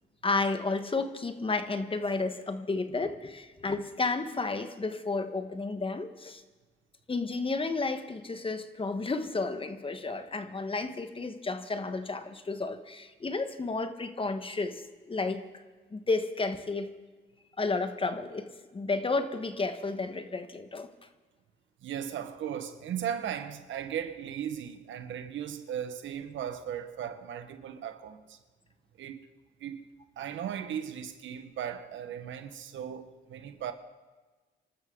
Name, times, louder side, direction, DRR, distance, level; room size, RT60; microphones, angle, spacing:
voice 1, 0.2-6.4 7.1-14.8 15.1-15.4 15.9-16.9 17.6-20.9, left 3 dB, 25° left, 1.4 m, -32 dB
voice 2, 21.8-28.4 29.0-29.3 29.6-29.8 30.2-33.7, right 9 dB, 75° right, 1.5 m, -37 dB
26.5 x 13.0 x 4.0 m
cardioid pair, 90°, 20 cm